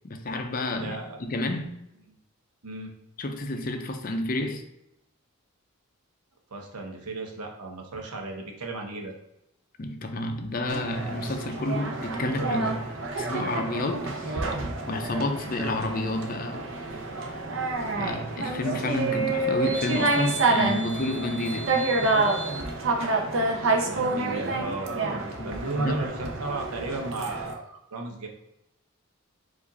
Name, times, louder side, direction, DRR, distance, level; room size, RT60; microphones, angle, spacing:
voice 1, 0.0-1.7 3.2-4.6 9.8-14.5 14.9-16.7 18.0-21.8 25.4-25.5 25.8-26.1, left 1 dB, 40° left, 5 dB, 0.5 m, -30 dB
voice 2, 0.8-1.3 2.1-2.2 2.6-2.9 6.5-9.1 23.8-28.3, right 2 dB, 90° right, 2 dB, 0.8 m, -35 dB
sound 1, 10.7-27.5, right 3 dB, 60° right, 0.6 m, -28 dB
4.8 x 2.5 x 4.0 m, 0.86 s
head